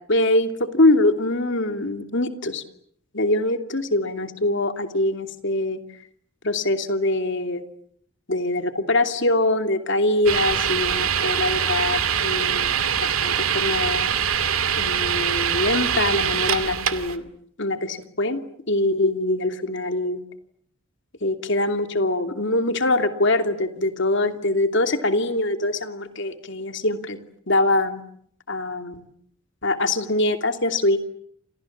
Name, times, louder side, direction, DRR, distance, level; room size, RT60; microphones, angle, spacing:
voice 1, 0.1-2.6 3.1-5.8 6.4-7.6 8.3-12.7 13.0-14.1 14.8-17.2 17.6-18.4 18.7-20.2 21.2-27.2 27.5-28.0 28.5-29.0 29.6-31.0, left 2 dB, 60° left, 7 dB, 2.8 m, -23 dB
sound 1, 10.3-17.2, right 8 dB, 85° right, 2.3 m, -23 dB
29.5 x 27.5 x 7.4 m, 0.68 s
head